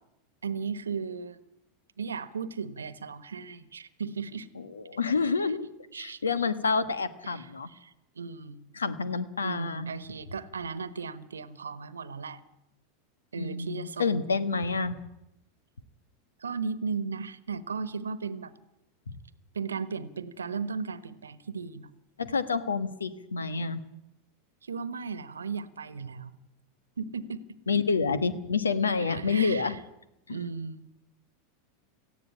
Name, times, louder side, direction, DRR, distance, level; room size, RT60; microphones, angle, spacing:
voice 1, 0.4-1.4 2.0-4.5 5.4-5.5 5.9-6.2 7.2-8.7 9.4-12.4 13.3-14.2 16.4-18.5 19.5-21.9 24.6-26.3 27.0-27.6 29.0-29.8 30.3-30.9, right 5 dB, 85° right, 16 dB, 1.2 m, -36 dB
voice 2, 4.7-5.7 6.0-7.7 8.7-9.9 13.4-14.9 19.1-19.2 22.2-23.8 27.7-29.7 30.3-30.4, left 4 dB, 85° left, 14 dB, 1.3 m, -28 dB
18.0 x 14.5 x 9.9 m, 0.87 s
hypercardioid pair, 90°, 0 cm